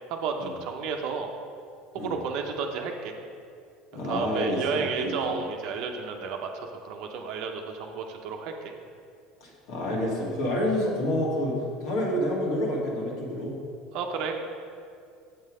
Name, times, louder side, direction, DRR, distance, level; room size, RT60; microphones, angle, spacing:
voice 1, 0.1-1.3 1.9-3.1 3.9-8.7 13.9-14.4, right 5 dB, 65° right, 3 dB, 0.7 m, -32 dB
voice 2, 3.9-5.4 9.4-13.5, equal, 70° left, -3 dB, 2.1 m, -28 dB
7.3 x 5.6 x 4.9 m, 2.3 s
supercardioid pair, 95°, 0 cm